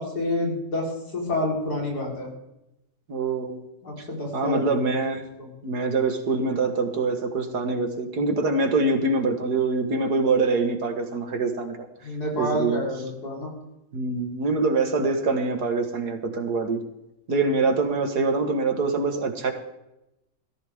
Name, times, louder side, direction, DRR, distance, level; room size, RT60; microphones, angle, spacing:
voice 1, 0.0-2.3 3.8-5.0 5.4-5.5 12.0-13.5, left 1 dB, 80° left, -2 dB, 4.9 m, -28 dB
voice 2, 3.1-3.6 4.3-5.2 5.6-11.9 12.4-12.8 13.9-16.8 17.3-19.5, right 3 dB, 80° right, 6 dB, 2.3 m, -24 dB
17.5 x 14.5 x 3.7 m, 0.89 s
omnidirectional pair, 1.7 m